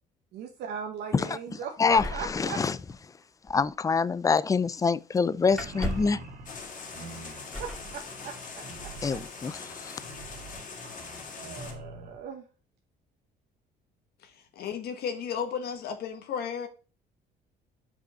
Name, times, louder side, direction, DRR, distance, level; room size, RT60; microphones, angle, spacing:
voice 1, 0.3-2.6 7.6-8.3 11.4-12.4, right 7 dB, 75° right, 1.2 m, -38 dB
voice 2, 1.8-2.8 3.5-6.2 9.0-10.0, left 5 dB, 20° left, 0.4 m, -26 dB
sound 1, 1.9-3.2 3.5-3.7 5.5-6.2 7.5-7.9 9.0-9.1 9.5-10.0, equal, 5° left, 2.7 m, -36 dB
sound 2, 5.4-12.2, right 2 dB, 60° right, 2.3 m, -45 dB
sound 3, 6.5-11.7, left 5 dB, 50° left, 2.5 m, -42 dB
voice 3, 14.2-16.7, left 7 dB, 70° left, 1.4 m, -34 dB
5.5 x 5.1 x 5.5 m
cardioid pair, 110°, 17 cm